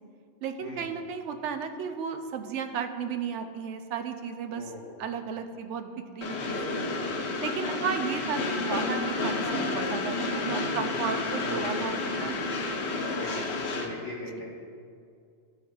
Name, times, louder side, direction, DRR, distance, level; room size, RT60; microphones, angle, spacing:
voice 1, 0.4-4.6 5.0-6.9 7.4-12.9, right 6 dB, 80° right, 7 dB, 0.9 m, -34 dB
voice 2, 4.5-4.9 10.5-10.8 11.4-12.3 13.2-14.5, left 2 dB, 90° left, -8 dB, 1.4 m, -41 dB
Train, 6.2-13.8, left 3 dB, 70° left, 1.0 m, -30 dB
12.5 x 5.3 x 2.3 m, 2.4 s
omnidirectional pair, 1.2 m